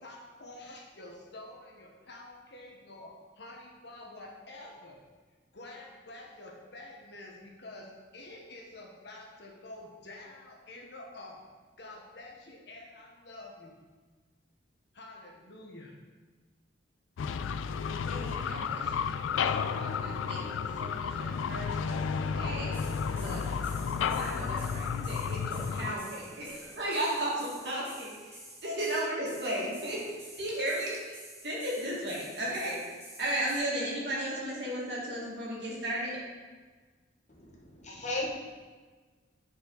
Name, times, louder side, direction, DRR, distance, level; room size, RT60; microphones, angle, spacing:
voice 1, 0.0-5.0 5.5-11.4 11.8-13.7 14.9-15.9, left 2 dB, 60° left, 0 dB, 1.2 m, -48 dB
sound 1, 17.2-25.9, left 6 dB, 90° left, 0.3 m, -32 dB
voice 2, 18.0-22.8 23.1-23.5 24.1-31.2 31.4-32.8 33.2-36.2, right 1 dB, 60° right, -5 dB, 2.1 m, -35 dB
sound 2, 21.9-27.0, left 1 dB, 10° left, 0.7 m, -53 dB
sound 3, 22.7-33.6, right 1 dB, 15° right, 2.0 m, -50 dB
voice 3, 37.3-38.3, left 2 dB, 40° left, -2 dB, 1.1 m, -36 dB
8.9 x 4.7 x 3.9 m, 1.4 s
head